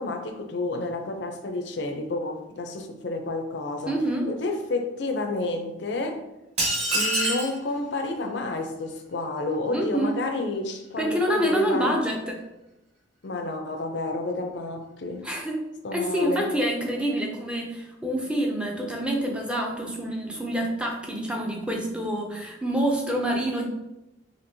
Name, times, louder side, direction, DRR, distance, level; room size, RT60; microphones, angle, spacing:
voice 1, 0.0-4.0 4.3-6.2 6.9-12.0 13.2-15.2 15.8-16.5, left 2 dB, 60° left, 5 dB, 0.5 m, -30 dB
voice 2, 3.9-4.3 9.7-10.2 11.0-12.4 15.2-15.6 15.9-23.7, right 1 dB, 5° right, 0 dB, 0.4 m, -27 dB
sound 1, 6.6-7.6, right 1 dB, 35° right, 1.1 m, -25 dB
4.4 x 2.8 x 2.6 m, 0.93 s
head